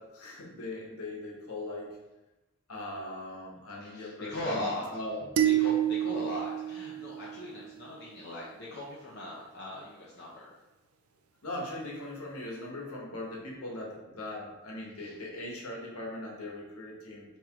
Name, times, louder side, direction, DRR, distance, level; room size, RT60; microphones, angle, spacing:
voice 1, 0.0-1.9 2.7-4.6 4.9-5.2 11.4-17.2, left 1 dB, 85° left, -2 dB, 1.2 m, -40 dB
voice 2, 3.8-5.0 5.4-10.5 15.0-15.2, left 1 dB, 50° left, -5 dB, 0.7 m, -39 dB
sound 1, 5.4-7.8, right 11 dB, 85° right, 0.5 m, -29 dB
4.6 x 3.2 x 3.6 m, 1.0 s
head